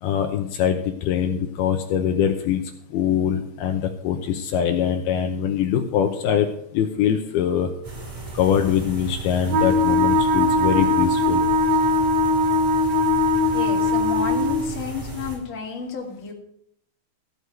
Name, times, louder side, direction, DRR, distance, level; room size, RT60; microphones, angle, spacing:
voice 1, 0.0-2.6 2.9-6.5 6.7-7.7 8.3-11.4, left 9 dB, 75° left, 5 dB, 2.7 m, -23 dB
sound 1, 7.8-15.4, right 3 dB, 40° right, 5.4 m, -35 dB
Wind instrument woodwind instrument, 9.5-14.7, left 1 dB, 75° right, 3.2 m, -20 dB
voice 2, 13.5-16.3, left 5 dB, 25° left, -1 dB, 2.2 m, -31 dB
15.0 x 6.3 x 6.8 m, 0.70 s
omnidirectional pair, 4.7 m